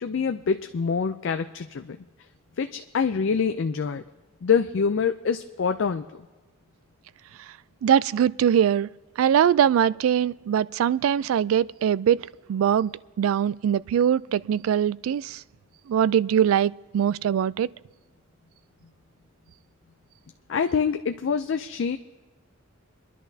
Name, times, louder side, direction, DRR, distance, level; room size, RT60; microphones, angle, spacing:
voice 1, 0.0-2.0 2.6-4.0 4.4-6.3 20.5-22.0, left 6 dB, 60° left, 0.4 m, -25 dB
voice 2, 7.8-8.9 9.2-12.2 12.5-12.9 13.2-15.4 15.9-17.7, right 9 dB, 85° right, 0.3 m, -22 dB
28.5 x 11.0 x 2.7 m
head